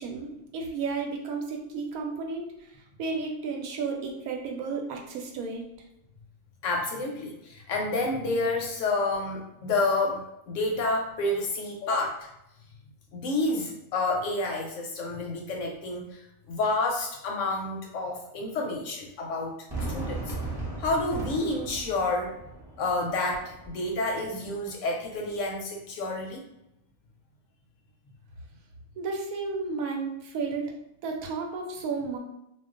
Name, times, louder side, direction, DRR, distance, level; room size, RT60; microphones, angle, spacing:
voice 1, 0.0-2.5 3.0-5.6 29.0-30.7 31.0-32.2, right 4 dB, 80° right, 1 dB, 1.0 m, -32 dB
voice 2, 6.6-12.3 13.1-19.6 19.9-20.3 20.8-22.3 22.8-26.4, left 2 dB, 70° left, 0 dB, 0.8 m, -29 dB
Fireworks, 19.7-24.7, right 2 dB, 25° right, 0.6 m, -37 dB
2.4 x 2.2 x 3.6 m, 0.84 s
omnidirectional pair, 1.5 m